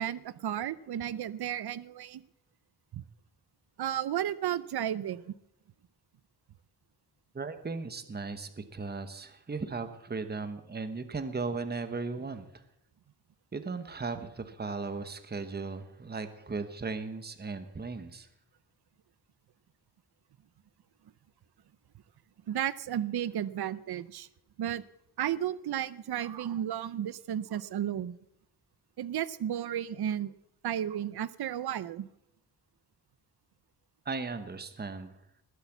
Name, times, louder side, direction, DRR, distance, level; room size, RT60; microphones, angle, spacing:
voice 1, 0.0-2.2 2.9-3.0 3.8-5.3 22.5-24.3 24.6-24.8 25.2-28.2 29.0-30.3 30.6-32.1, right 10 dB, 65° right, 17 dB, 0.6 m, -33 dB
voice 2, 7.3-12.4 13.5-18.3 34.0-35.1, right 4 dB, 25° right, 9 dB, 1.1 m, -37 dB
20.0 x 8.3 x 7.2 m, 0.80 s
wide cardioid pair, 160°, 41 cm